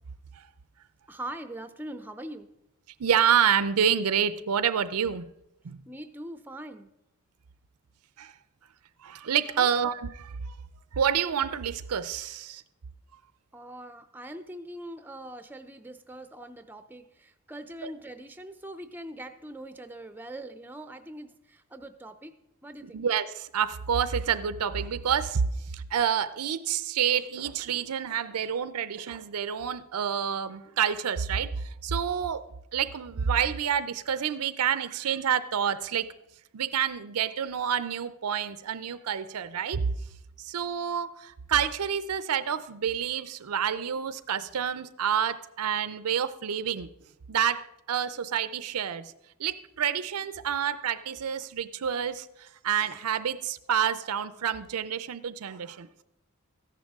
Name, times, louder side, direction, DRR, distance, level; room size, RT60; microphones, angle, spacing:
voice 1, 1.1-2.5 5.9-6.9 9.5-9.7 13.5-22.3 22.6-23.0, right 1 dB, 10° right, 9 dB, 0.5 m, -42 dB
voice 2, 3.0-5.3 5.6-5.8 8.2-8.3 9.0-10.5 10.9-12.6 22.9-25.5 25.7-31.5 31.8-32.5 32.7-36.1 36.5-39.9 40.4-46.9 47.3-49.1 49.4-56.0, right 8 dB, 90° right, 15 dB, 0.5 m, -28 dB
14.0 x 10.5 x 3.6 m, 0.84 s
head